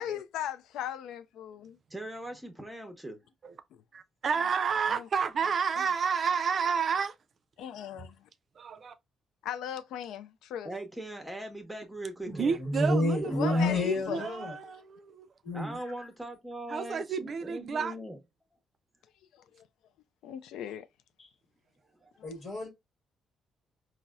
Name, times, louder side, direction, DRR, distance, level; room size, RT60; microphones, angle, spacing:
voice 1, 0.0-1.8 4.9-5.1 7.6-8.2 9.4-10.7 13.2-14.3 19.5-19.7 20.2-20.9 22.2-22.3, left 10 dB, 85° left, 0.3 m, -38 dB
voice 2, 1.9-3.2 10.6-12.6 15.5-18.2, right 1 dB, 5° right, 0.7 m, -40 dB
voice 3, 3.9-7.1 8.6-8.9 12.3-15.3 16.7-17.9, right 6 dB, 50° right, 0.3 m, -30 dB
voice 4, 12.3-14.5 15.4-15.8 21.2-21.3 22.2-22.7, left 1 dB, 50° left, 1.2 m, -29 dB
4.0 x 2.0 x 2.3 m
cardioid pair, 90°, 0 cm